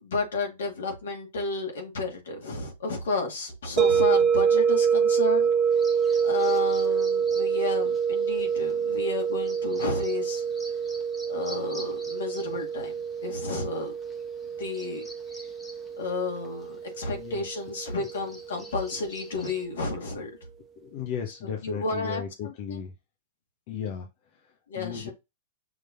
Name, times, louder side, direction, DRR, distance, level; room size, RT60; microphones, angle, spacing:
voice 1, 0.0-5.5 6.2-10.4 11.3-12.9 13.2-13.9 14.6-15.0 16.0-20.3 21.4-22.8 24.7-25.1, left 3 dB, 75° left, 2.1 m, -32 dB
sound 1, 3.8-18.7, right 7 dB, 30° right, 0.3 m, -26 dB
Bird vocalization bird call bird song, 5.7-19.7, left 1 dB, 10° left, 1.3 m, -49 dB
voice 2, 17.1-18.1 18.5-18.6 20.8-22.9 23.7-25.1, left 8 dB, 50° left, 1.0 m, -36 dB
6.0 x 3.2 x 2.7 m
hypercardioid pair, 110°, 0 cm